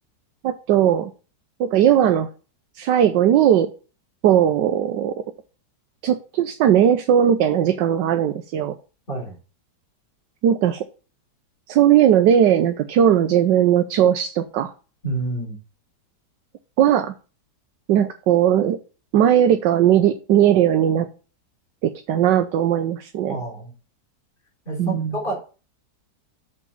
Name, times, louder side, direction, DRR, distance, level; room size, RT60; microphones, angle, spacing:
voice 1, 0.4-1.1 1.6-2.3 2.7-3.7 4.2-5.2 6.0-8.8 10.4-10.8 11.7-14.7 16.8-17.1 17.9-18.8 19.1-21.1 21.8-23.4 24.8-25.2, right 10 dB, 85° right, 7 dB, 1.4 m, -18 dB
voice 2, 15.0-15.6 23.3-23.7 24.7-25.4, right 2 dB, 30° left, -3 dB, 4.0 m, -28 dB
6.7 x 5.0 x 7.0 m, 0.35 s
omnidirectional pair, 1.9 m